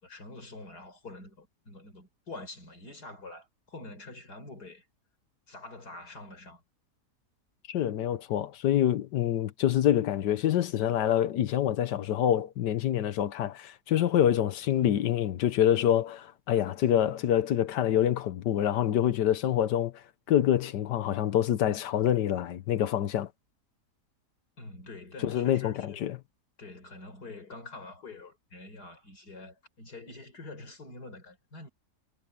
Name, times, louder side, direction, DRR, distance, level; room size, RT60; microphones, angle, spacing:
voice 1, 0.0-4.9 5.5-6.6 24.6-26.2 26.6-31.7, left 2 dB, 70° left, 5.6 m, -46 dB
voice 2, 7.7-23.3 25.2-26.2, left 11 dB, 90° left, 1.5 m, -26 dB
omnidirectional pair, 1.8 m